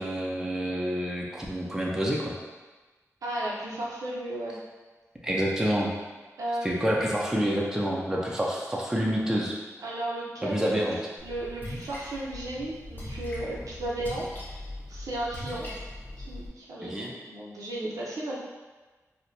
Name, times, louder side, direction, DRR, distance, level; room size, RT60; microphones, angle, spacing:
voice 1, 0.0-2.3 5.2-5.9 6.6-9.5 10.4-11.0 16.8-17.1, equal, 10° right, -4 dB, 0.5 m, -28 dB
voice 2, 3.2-4.6 6.4-7.0 9.8-10.7 11.2-14.3 14.9-15.7 16.2-18.4, right 1 dB, 85° right, -5 dB, 0.6 m, -34 dB
Splash splatter, 11.2-16.5, left 1 dB, 35° left, 0.9 m, -40 dB
4.2 x 2.1 x 2.6 m, 1.3 s
wide cardioid pair, 85°, 6 cm